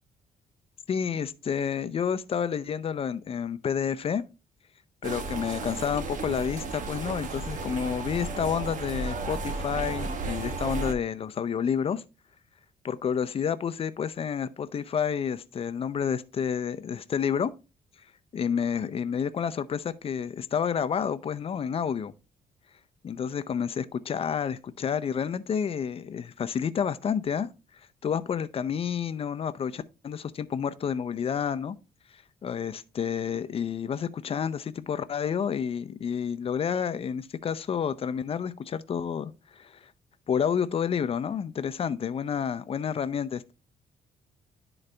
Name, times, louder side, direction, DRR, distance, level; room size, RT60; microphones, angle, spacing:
voice 1, 0.9-4.2 5.0-12.0 12.8-17.5 18.3-22.1 23.0-27.5 28.0-31.8 32.4-39.8 40.3-43.5, left 7 dB, 40° left, 0.5 m, -29 dB
sound 1, 5.0-10.9, right 3 dB, 65° right, 1.1 m, -33 dB
11.0 x 3.9 x 3.3 m
cardioid pair, 110°, 14 cm